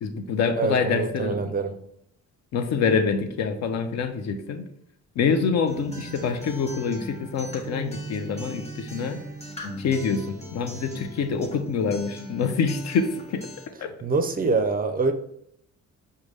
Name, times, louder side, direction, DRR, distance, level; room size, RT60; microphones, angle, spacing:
voice 1, 0.0-1.5 2.5-4.6 5.2-9.2 9.8-13.5 13.8-13.9, left 5 dB, 60° left, 8 dB, 0.5 m, -26 dB
voice 2, 0.6-1.8 14.0-15.1, right 4 dB, 30° right, 7 dB, 0.4 m, -25 dB
Acoustic guitar, 5.7-13.7, equal, 20° left, 0.9 m, -39 dB
4.9 x 2.2 x 3.2 m, 0.73 s
cardioid pair, 90°, 30 cm